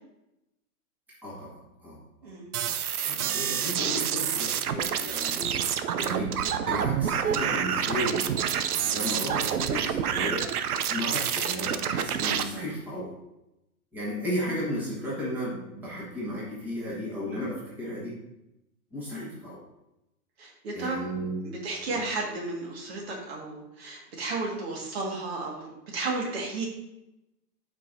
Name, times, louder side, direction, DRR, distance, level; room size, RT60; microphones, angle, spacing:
voice 1, 1.2-2.3 3.0-8.3 8.8-13.1 13.9-18.2 18.9-19.6 20.7-21.4 21.9-22.0, equal, 5° right, -8 dB, 1.4 m, -34 dB
sound 1, 2.5-12.4, right 9 dB, 70° right, 0.7 m, -28 dB
voice 2, 20.4-21.0 21.4-26.7, right 3 dB, 40° right, -1 dB, 2.0 m, -33 dB
13.5 x 5.1 x 2.7 m, 0.91 s
hypercardioid pair, 175°, 46 cm